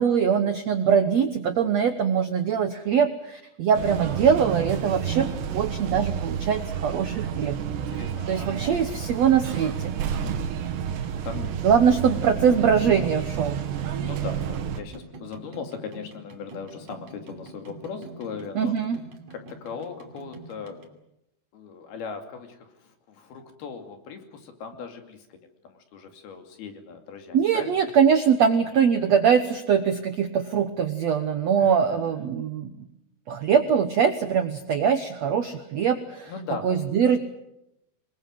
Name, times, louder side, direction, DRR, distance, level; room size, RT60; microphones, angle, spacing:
voice 1, 0.0-5.3 5.5-7.5 8.3-9.9 11.6-13.6 18.5-19.0 27.3-32.7 33.3-36.3 36.6-37.2, right 7 dB, 70° right, 9 dB, 1.6 m, -22 dB
sound 1, 3.7-14.8, right 8 dB, 90° right, 4.0 m, -30 dB
voice 2, 7.9-9.0 10.2-10.5 11.2-11.5 14.0-18.8 19.3-20.8 21.5-27.8 31.6-32.1 36.3-36.9, left 5 dB, 70° left, 6 dB, 4.5 m, -39 dB
sound 2, 10.5-20.9, right 2 dB, 45° right, 3.6 m, -46 dB
26.5 x 21.5 x 7.6 m, 0.84 s
omnidirectional pair, 4.7 m